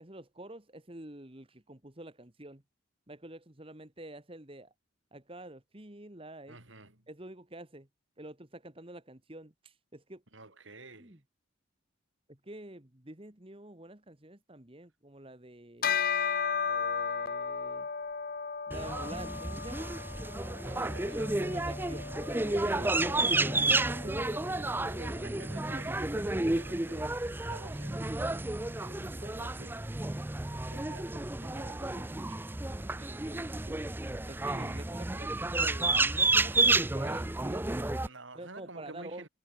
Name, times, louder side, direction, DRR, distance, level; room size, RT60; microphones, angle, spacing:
voice 1, 0.0-2.6 3.1-4.7 5.1-6.6 7.1-7.9 8.2-10.2 11.0-11.2 12.3-16.0 16.6-17.9 18.7-19.9 21.4-22.1 22.5-24.3 32.8-33.8 34.3-38.0 38.3-39.3, right 1 dB, 30° right, 1.8 m, -47 dB
voice 2, 6.5-7.1 10.3-11.2 20.6-21.4 22.6-23.3 24.6-32.5 38.1-39.3, right 2 dB, 75° right, 5.9 m, -51 dB
Bell, 15.8-25.5, left 6 dB, 45° left, 0.8 m, -36 dB
sound 1, 18.7-38.1, right 2 dB, 10° right, 0.5 m, -31 dB
head